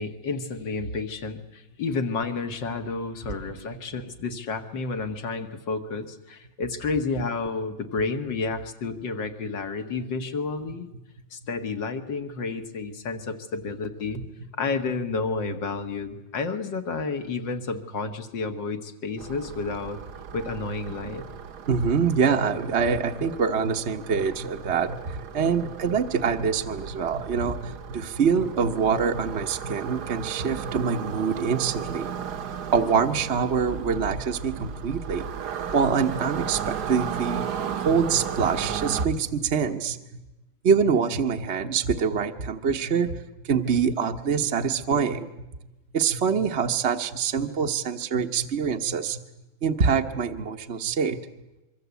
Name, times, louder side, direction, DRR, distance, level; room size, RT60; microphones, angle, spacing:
voice 1, 0.0-10.9 11.3-14.2 14.6-20.0 20.3-21.3, left 4 dB, 65° left, 8 dB, 2.4 m, -30 dB
sound 1, 19.2-39.1, right 7 dB, 60° right, 1.6 m, -35 dB
voice 2, 21.7-32.2 32.7-35.3 35.7-37.5 37.8-40.0 40.6-45.3 45.9-49.2 49.6-51.2, right 6 dB, 40° right, 5 dB, 1.2 m, -25 dB
25.0 x 24.0 x 8.3 m, 1.0 s
omnidirectional pair, 2.1 m